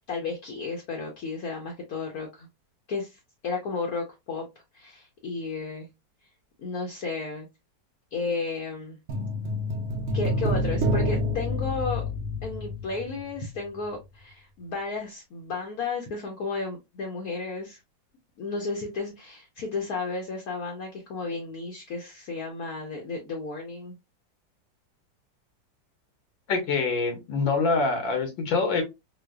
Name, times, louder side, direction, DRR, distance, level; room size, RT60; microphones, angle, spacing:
voice 1, 0.1-2.5 2.9-4.4 4.7-5.9 6.6-7.5 8.1-9.0 10.1-12.0 12.4-17.8 18.4-23.9, left 4 dB, 60° left, 0 dB, 1.1 m, -33 dB
sound 1, 9.1-13.5 13.8-13.9, left 1 dB, 85° right, 0.6 m, -28 dB
voice 2, 26.5-28.8, left 4 dB, 85° left, 3 dB, 1.8 m, -25 dB
3.9 x 2.4 x 2.3 m, 0.22 s
omnidirectional pair, 2.0 m